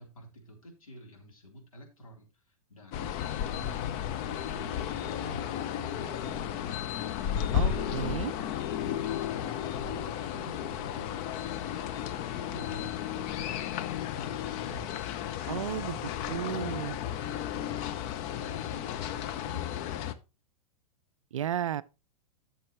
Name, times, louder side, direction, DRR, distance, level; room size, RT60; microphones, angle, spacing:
voice 1, 0.0-3.1 3.5-6.9 7.6-8.5 8.8-12.2 12.5-15.1 15.5-19.8, equal, 75° left, 3.5 m, -49 dB
sound 1, 2.9-20.1, left 10 dB, 35° left, 0.7 m, -34 dB
voice 2, 7.5-8.3 15.5-16.0 16.3-17.0 21.3-21.8, right 10 dB, 65° right, 0.4 m, -33 dB
12.5 x 6.9 x 3.0 m
figure-of-eight pair, 100°, 18 cm